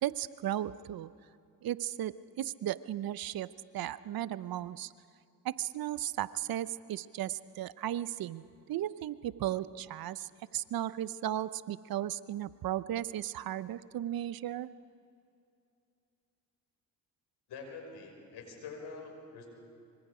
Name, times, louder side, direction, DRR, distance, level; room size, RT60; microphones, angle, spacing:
voice 1, 0.0-1.1 1.6-4.9 5.4-14.7, right 12 dB, 60° right, 16 dB, 0.8 m, -35 dB
voice 2, 17.5-19.5, left 4 dB, 65° left, 2 dB, 6.0 m, -45 dB
25.5 x 25.0 x 5.0 m, 2.6 s
supercardioid pair, 70°, 41 cm